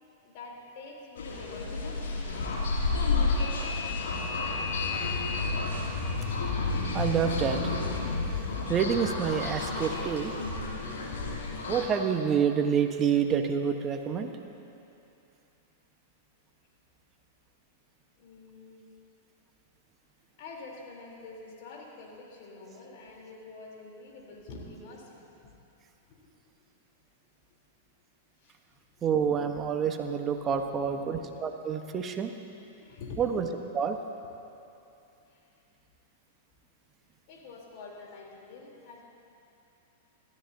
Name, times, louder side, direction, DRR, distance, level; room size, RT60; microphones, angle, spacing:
voice 1, 0.2-2.4 18.2-18.8 20.4-25.5 26.1-26.3 27.5-27.6 28.4-28.6 30.5-31.1 32.8-33.2 35.3-35.5 37.3-39.0, left 3 dB, 50° left, -2 dB, 3.6 m, -47 dB
sound 1, 1.2-11.9, left 3 dB, 70° left, 2.6 m, -31 dB
voice 2, 6.9-7.7 8.7-10.3 11.7-14.3 29.0-32.3 33.2-33.5 33.7-34.0, right 7 dB, 25° right, 5 dB, 1.2 m, -28 dB
29.0 x 13.0 x 2.8 m, 2.8 s
figure-of-eight pair, 100°, 0 cm